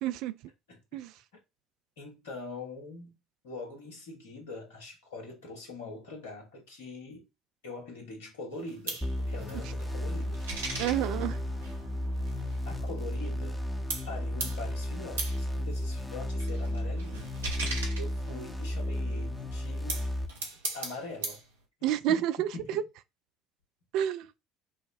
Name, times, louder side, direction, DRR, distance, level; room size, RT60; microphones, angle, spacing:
voice 1, 0.0-0.3 0.9-1.1 10.8-11.4 21.8-22.8 23.9-24.3, right 11 dB, 60° right, 0.3 m, -29 dB
voice 2, 2.0-3.2 3.4-7.3 7.6-10.4 12.6-13.7 14.1-17.4 18.0-20.1 20.7-21.4 22.1-22.8, left 3 dB, 70° left, 1.3 m, -43 dB
sound 1, 8.5-13.6 13.9-18.9 19.6-21.5, right 3 dB, 75° right, 0.8 m, -39 dB
sound 2, 9.0-20.3, left 1 dB, 10° left, 0.8 m, -33 dB
5.5 x 2.0 x 2.5 m
figure-of-eight pair, 60°, 0 cm